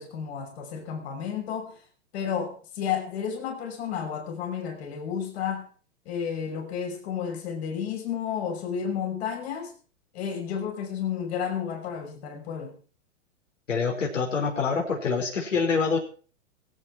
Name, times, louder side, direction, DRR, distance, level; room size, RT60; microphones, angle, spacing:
voice 1, 0.0-1.8 2.1-5.7 6.1-9.7 10.1-12.8, left 7 dB, 55° left, 6.0 m, -32 dB
voice 2, 13.7-16.0, left 5 dB, 80° left, 5.5 m, -26 dB
24.0 x 9.0 x 4.7 m
hypercardioid pair, 110°, 37 cm